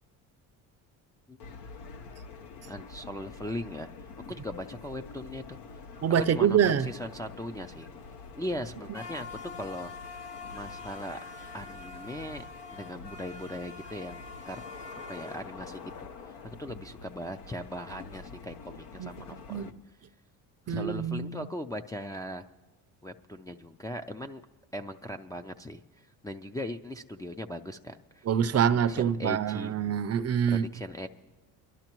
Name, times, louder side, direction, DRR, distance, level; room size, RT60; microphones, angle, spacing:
sound 1, 1.4-19.7, left 4 dB, 75° left, 1.0 m, -45 dB
voice 1, 2.7-5.6 6.3-7.9 8.3-10.2 10.5-11.2 11.5-14.6 15.1-19.7 20.7-22.4 23.0-24.4 24.7-28.3 28.6-29.7 30.5-31.1, left 1 dB, 10° left, 0.4 m, -39 dB
voice 2, 6.0-6.9 19.0-19.1 19.5-19.7 20.7-21.4 28.3-30.7, right 8 dB, 40° right, 0.5 m, -25 dB
25.5 x 11.5 x 3.0 m
supercardioid pair, 75°, 40 cm